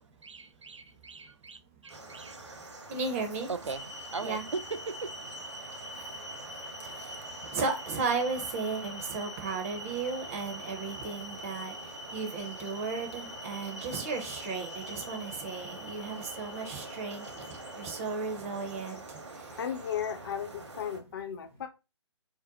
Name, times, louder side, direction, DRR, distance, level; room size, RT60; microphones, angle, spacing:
voice 1, 0.2-2.6 3.5-5.3 5.7-5.8, right 4 dB, 90° right, 0.4 m, -40 dB
sound 1, 1.9-21.0, right 2 dB, 75° right, 0.9 m, -46 dB
voice 2, 2.9-3.5 4.2-4.4 5.9-6.2 6.5-19.6, right 4 dB, 30° right, 0.5 m, -35 dB
sound 2, 3.7-18.0, equal, 90° left, 0.8 m, -45 dB
voice 3, 19.6-21.7, left 8 dB, 50° left, 0.6 m, -35 dB
2.6 x 2.0 x 3.8 m
figure-of-eight pair, 130°, 15 cm